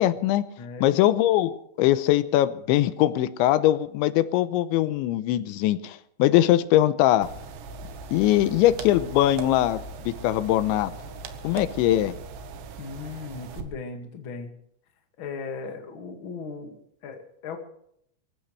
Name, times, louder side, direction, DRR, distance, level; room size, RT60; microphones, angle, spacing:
voice 1, 0.0-0.4 0.8-7.3 8.1-9.8 10.1-10.9 11.4-12.1, left 13 dB, 90° left, 13 dB, 3.1 m, -21 dB
voice 2, 0.6-1.0 12.8-14.5 15.2-16.8 17.0-17.6, left 4 dB, 40° left, 3 dB, 1.9 m, -37 dB
sound 1, 7.2-13.6, right 4 dB, 90° right, 3.6 m, -39 dB
24.0 x 16.0 x 3.3 m, 0.71 s
omnidirectional pair, 5.2 m